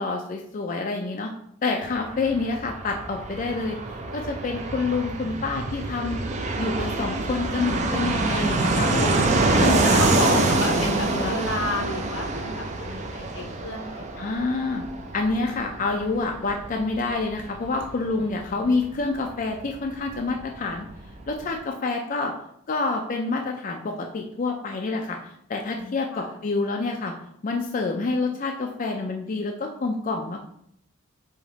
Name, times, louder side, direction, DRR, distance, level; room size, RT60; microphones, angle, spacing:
voice 1, 0.0-1.3 1.6-3.8 4.1-6.2 6.6-9.2 9.6-11.4 14.2-14.8 15.1-20.8 21.3-22.3 22.7-25.2 25.5-27.1 27.4-30.4, left 3 dB, 40° left, 2 dB, 0.4 m, -27 dB
Fixed-wing aircraft airplane, 1.8-20.2 20.5-20.6 20.8-21.5, right 2 dB, 35° right, 0.5 m, -26 dB
voice 2, 9.8-14.4 18.1-18.7 25.7-26.4, left 1 dB, 85° left, 3 dB, 0.9 m, -32 dB
4.9 x 2.6 x 3.9 m, 0.71 s
head